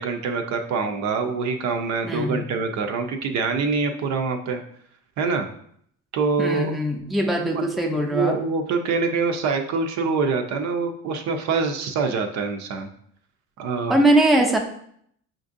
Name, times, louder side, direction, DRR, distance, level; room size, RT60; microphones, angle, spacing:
voice 1, 0.0-4.6 5.2-5.5 6.1-6.7 7.4-12.9 13.6-14.0, right 4 dB, 60° right, 5 dB, 0.6 m, -25 dB
voice 2, 2.1-2.4 6.4-8.4 13.9-14.6, right 1 dB, ahead, 1 dB, 0.5 m, -21 dB
5.8 x 2.6 x 2.5 m, 0.66 s
supercardioid pair, 85°, 33 cm